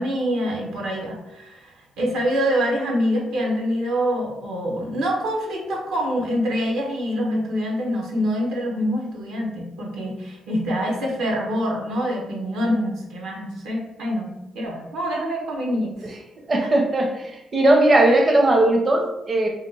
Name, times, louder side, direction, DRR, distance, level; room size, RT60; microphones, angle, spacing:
voice 1, 0.0-16.1 18.1-18.2, equal, 90° right, -1 dB, 0.8 m, -25 dB
voice 2, 16.5-17.2 17.5-19.5, right 1 dB, 35° right, 1 dB, 0.5 m, -18 dB
2.8 x 2.1 x 3.7 m, 0.95 s
cardioid pair, 85°, 0 cm